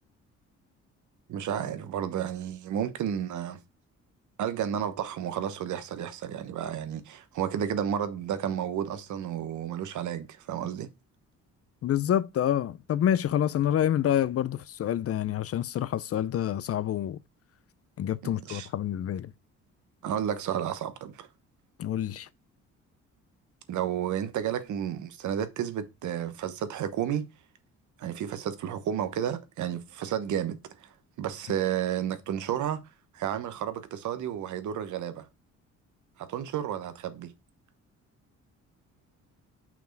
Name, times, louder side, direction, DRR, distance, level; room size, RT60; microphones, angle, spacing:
voice 1, 1.3-3.6 4.4-10.9 18.2-18.7 20.0-21.3 23.7-27.3 28.0-30.9 31.2-32.8 33.1-35.3 36.2-37.3, right 9 dB, 75° right, 1.1 m, -32 dB
voice 2, 11.8-17.2 18.0-19.3 21.8-22.3, left 10 dB, 50° left, 0.5 m, -27 dB
5.9 x 4.6 x 4.5 m
cardioid pair, 90°, 30 cm